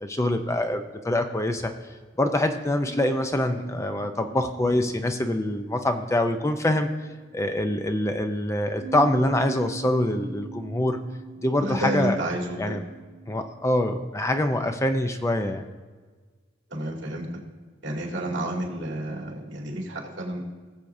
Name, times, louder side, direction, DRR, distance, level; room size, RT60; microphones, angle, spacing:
voice 1, 0.0-1.7 2.2-6.9 7.3-11.0 11.4-12.2 12.6-12.8 13.3-15.6, left 1 dB, 15° left, 6 dB, 0.5 m, -25 dB
sound 1, 8.8-14.1, right 5 dB, 85° left, 2.6 m, -43 dB
voice 2, 11.6-12.8 16.7-17.4 17.8-20.4, right 1 dB, 70° right, -1 dB, 2.3 m, -30 dB
20.0 x 7.3 x 2.6 m, 1.4 s
head